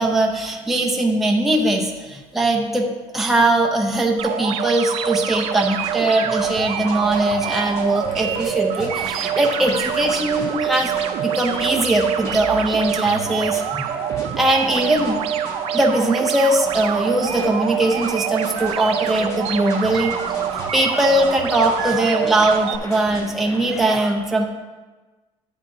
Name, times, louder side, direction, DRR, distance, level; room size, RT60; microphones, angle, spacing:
voice 1, 0.0-2.9 3.1-10.9 11.2-13.8 14.4-15.2 15.7-20.2 20.5-24.5, right 1 dB, ahead, 0 dB, 0.6 m, -20 dB
sound 1, 4.2-22.8, right 9 dB, 55° right, 0.6 m, -25 dB
sound 2, 5.6-23.8, equal, 25° left, 1.3 m, -37 dB
10.5 x 8.1 x 2.7 m, 1.3 s
cardioid pair, 175°, 12 cm